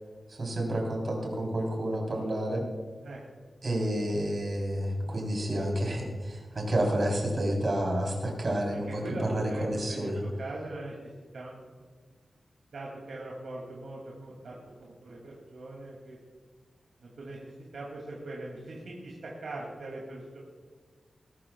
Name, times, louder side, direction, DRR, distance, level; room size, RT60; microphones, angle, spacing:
voice 1, 0.3-2.6 3.6-10.2, right 1 dB, 40° right, -1 dB, 3.9 m, -30 dB
voice 2, 8.9-10.9 11.3-11.8 12.7-16.2 17.0-17.4 17.7-20.4, right 2 dB, 80° right, -4 dB, 2.7 m, -41 dB
20.5 x 13.0 x 2.4 m, 1.5 s
wide cardioid pair, 160°, 0 cm